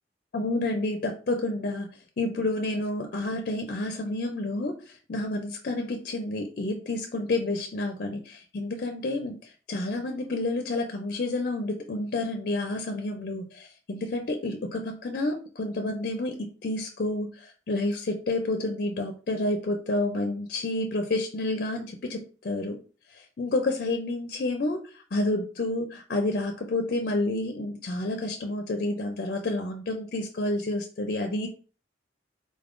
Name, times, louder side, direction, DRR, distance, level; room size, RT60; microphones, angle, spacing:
voice 1, 0.3-1.9 2.2-4.7 5.1-9.4 9.7-22.8 23.4-24.8 25.1-31.5, left 2 dB, 50° left, 5 dB, 0.4 m, -29 dB
3.6 x 3.5 x 2.5 m, 0.37 s
head